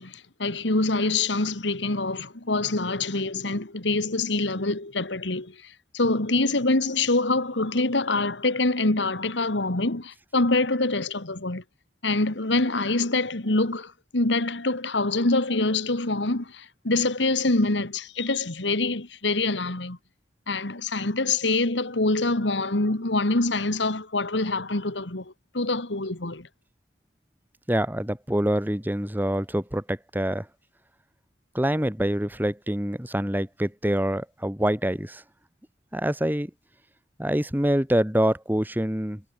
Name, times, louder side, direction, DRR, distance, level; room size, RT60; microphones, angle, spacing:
voice 1, 0.0-11.6 12.0-20.0 20.5-26.5, left 2 dB, 75° left, 2.3 m, -25 dB
voice 2, 27.7-30.5 31.5-35.2 35.9-36.5 37.2-39.2, equal, 10° right, 2.2 m, -25 dB
head